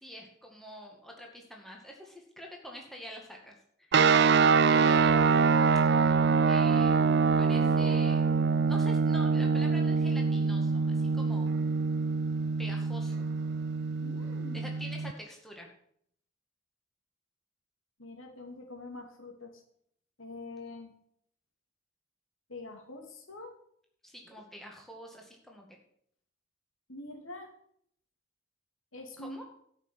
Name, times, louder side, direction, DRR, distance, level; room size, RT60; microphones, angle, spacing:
voice 1, 0.0-5.4 6.5-7.1 7.4-11.5 12.6-13.3 14.5-15.7 24.0-25.8 29.2-29.4, equal, ahead, 0 dB, 2.0 m, -46 dB
sound 1, 3.9-15.1, right 5 dB, 55° right, 0.4 m, -25 dB
voice 2, 14.0-14.7 18.0-19.6 20.2-20.9 22.5-23.5 26.9-27.5 28.9-29.4, left 2 dB, 80° left, 4 dB, 2.5 m, -44 dB
12.5 x 6.0 x 8.2 m, 0.67 s
head